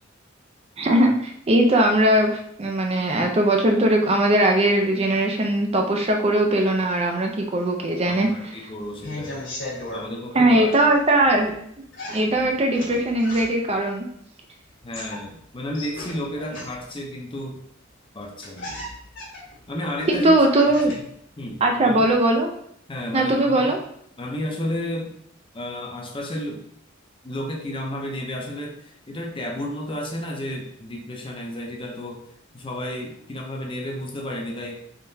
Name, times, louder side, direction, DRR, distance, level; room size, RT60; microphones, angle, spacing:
voice 1, 0.8-8.3 10.4-11.5 12.1-14.1 20.1-20.9 21.6-22.5 23.1-23.8, right 1 dB, 30° right, 2 dB, 0.4 m, -20 dB
voice 2, 8.1-9.4 9.9-10.7 14.8-17.6 18.1-18.7 19.7-20.4 20.9-21.0 21.4-22.0 22.9-23.8 24.2-25.2 25.5-26.7 27.2-32.2 32.5-34.8, left 1 dB, 25° left, 1 dB, 0.6 m, -32 dB
sound 1, 8.8-10.1 10.6-11.6 11.9-13.7 14.7-17.0 17.9-18.0 18.2-21.1 21.5-22.1, left 1 dB, 65° left, 1.3 m, -37 dB
3.7 x 3.3 x 2.7 m, 0.70 s
head